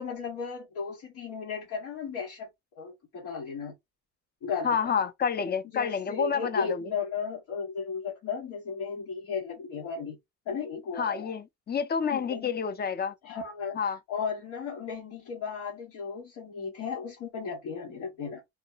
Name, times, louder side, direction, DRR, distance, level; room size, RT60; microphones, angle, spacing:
voice 1, 0.0-2.5 2.8-3.7 4.4-4.9 5.7-10.2 10.5-11.3 12.1-12.5 13.2-13.8 14.1-18.4, left 5 dB, 90° left, 1.3 m, -35 dB
voice 2, 4.6-6.8 11.0-13.1 13.8-14.0, left 6 dB, 35° left, 0.6 m, -29 dB
3.1 x 2.1 x 3.8 m
cardioid pair, 90°, 30 cm